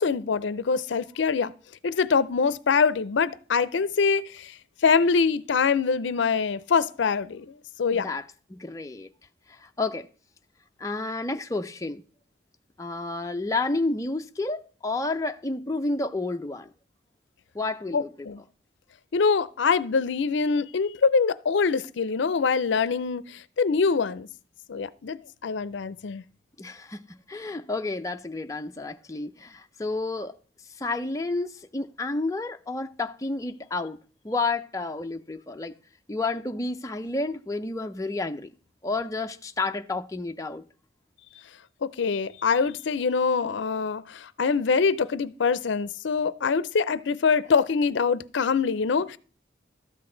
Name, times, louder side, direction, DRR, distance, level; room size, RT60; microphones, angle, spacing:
voice 1, 0.0-1.5 1.8-7.5 7.8-8.1 17.9-18.4 19.1-24.3 24.7-26.2 41.8-49.2, left 5 dB, 75° left, 0.5 m, -24 dB
voice 2, 7.9-8.2 8.5-9.1 9.5-10.1 10.8-12.0 12.8-16.7 17.5-18.3 26.6-30.3 30.8-34.0 34.2-35.7 36.1-38.5 38.8-40.6, left 3 dB, 15° left, 0.4 m, -30 dB
13.0 x 8.0 x 3.8 m
head